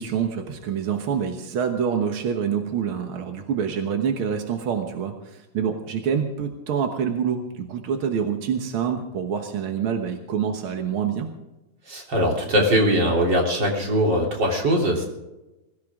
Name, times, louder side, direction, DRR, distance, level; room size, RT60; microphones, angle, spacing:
voice 1, 0.0-11.3, right 7 dB, 60° right, 5 dB, 1.3 m, -26 dB
voice 2, 11.9-15.1, equal, 30° right, 0 dB, 3.7 m, -21 dB
21.5 x 16.0 x 3.7 m, 1.0 s
omnidirectional pair, 3.9 m